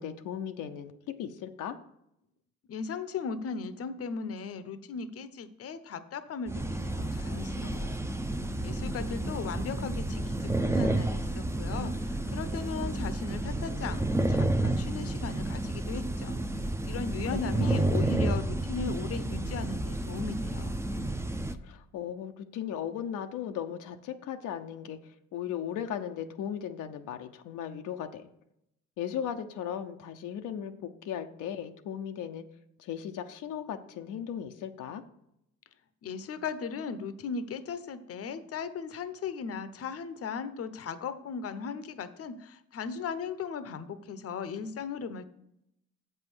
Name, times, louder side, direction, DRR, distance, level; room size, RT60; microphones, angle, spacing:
voice 1, 0.0-1.8 17.3-18.0 21.6-25.0 25.3-28.2 29.0-32.4 32.8-35.0, left 9 dB, 85° left, 5 dB, 0.7 m, -37 dB
voice 2, 2.7-8.0 8.6-16.4 16.9-20.8 36.0-45.3, left 5 dB, 50° left, 12 dB, 0.7 m, -37 dB
sound 1, 6.5-21.5, right 1 dB, 10° right, 0.5 m, -31 dB
7.5 x 5.5 x 6.1 m, 0.78 s
cardioid pair, 90°, 30 cm